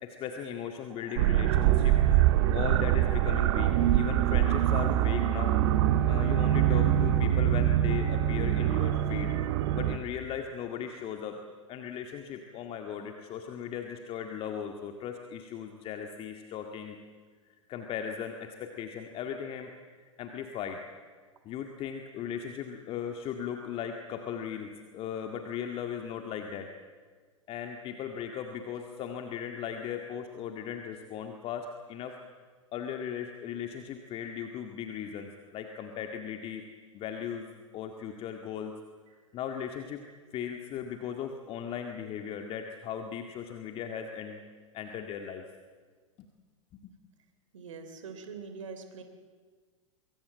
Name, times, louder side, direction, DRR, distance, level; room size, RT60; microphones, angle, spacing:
voice 1, 0.0-2.0 2.5-5.6 6.1-9.3 9.7-11.4 11.7-17.0 17.7-19.7 20.0-20.8 21.5-26.7 27.5-32.2 32.7-36.6 36.9-37.5 37.7-38.8 39.3-40.0 40.3-44.4 44.7-45.4 46.7-46.9, left 8 dB, 35° left, 5 dB, 2.0 m, -37 dB
sound 1, 1.2-10.0, right 12 dB, 50° right, 1.6 m, -24 dB
voice 2, 47.5-49.0, right 5 dB, 65° right, 8 dB, 3.5 m, -43 dB
24.5 x 23.5 x 7.6 m, 1.5 s
figure-of-eight pair, 95°, 17 cm